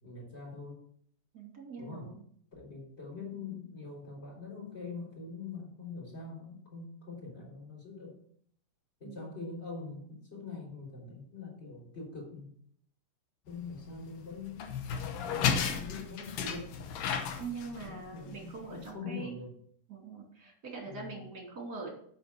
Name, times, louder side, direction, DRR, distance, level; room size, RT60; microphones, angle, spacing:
voice 1, 0.0-0.8 1.8-2.1 2.5-8.2 9.0-12.5 13.5-14.7 15.3-16.9 17.8-19.5 20.8-21.2, left 4 dB, 15° left, -3 dB, 3.5 m, -43 dB
voice 2, 1.3-2.2 9.0-9.3 17.4-19.4 19.9-21.9, right 4 dB, 30° right, -1 dB, 2.7 m, -43 dB
sound 1, 13.5-18.9, left 7 dB, 70° left, 2.3 m, -35 dB
8.3 x 6.1 x 6.7 m, 0.64 s
omnidirectional pair, 4.7 m